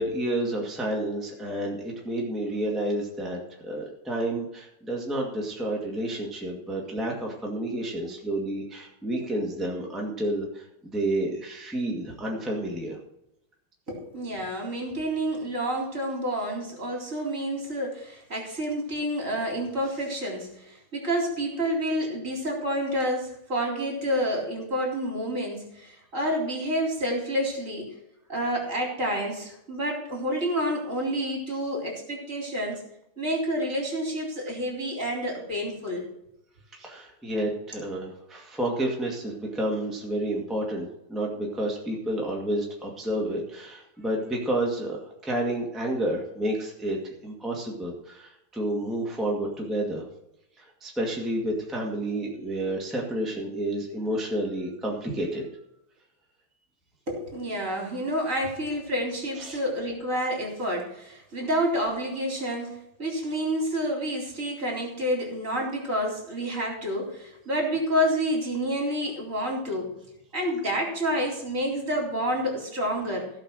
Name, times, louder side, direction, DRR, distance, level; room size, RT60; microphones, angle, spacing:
voice 1, 0.0-13.0 36.7-50.1 50.6-55.5 59.4-59.6, right 1 dB, ahead, -2 dB, 2.0 m, -30 dB
voice 2, 13.9-28.0 28.3-32.9 33.2-36.0 57.1-69.9 70.3-73.3, equal, 35° right, -1 dB, 3.9 m, -29 dB
16.5 x 5.9 x 6.5 m, 0.83 s
omnidirectional pair, 2.3 m